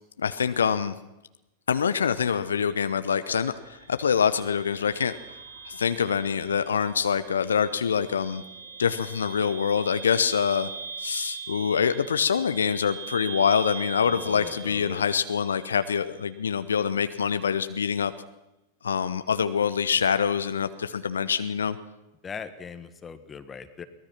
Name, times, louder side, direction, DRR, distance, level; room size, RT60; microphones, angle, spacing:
voice 1, 0.2-1.0 1.7-5.1 5.6-8.4 8.8-10.7 11.0-18.1 18.8-21.8, left 7 dB, 75° left, 12 dB, 0.8 m, -25 dB
sound 1, 3.4-16.3, right 5 dB, 75° right, 3.3 m, -42 dB
voice 2, 14.0-15.0 22.2-23.8, left 6 dB, 20° left, 10 dB, 1.7 m, -40 dB
23.0 x 19.0 x 5.9 m, 0.98 s
figure-of-eight pair, 90°, 0 cm